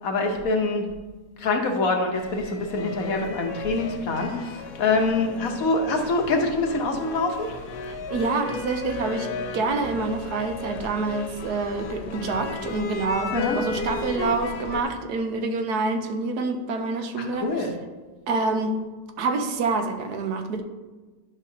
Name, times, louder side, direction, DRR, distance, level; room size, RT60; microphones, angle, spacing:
voice 1, 0.0-0.8 1.4-7.5 13.3-13.6 17.4-17.7, left 3 dB, 65° left, 4 dB, 1.3 m, -25 dB
sound 1, 2.1-14.8, left 4 dB, 85° left, 1.2 m, -35 dB
voice 2, 7.9-17.8 18.3-18.8 19.2-20.6, right 3 dB, 85° right, 6 dB, 1.3 m, -27 dB
11.0 x 6.3 x 2.8 m, 1.3 s
omnidirectional pair, 1.7 m